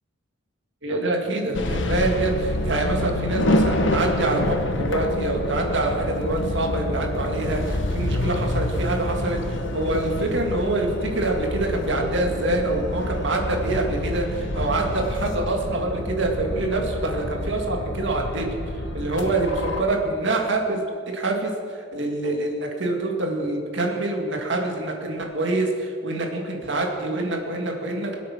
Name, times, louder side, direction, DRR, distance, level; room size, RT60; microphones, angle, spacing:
voice 1, 0.8-9.4 9.7-18.5 18.9-20.8 21.1-21.5 21.9-28.2, right 2 dB, 55° right, 1 dB, 2.1 m, -25 dB
sound 1, 1.5-19.8, left 1 dB, 60° left, 1.0 m, -27 dB
22.0 x 8.4 x 6.0 m, 2.4 s
head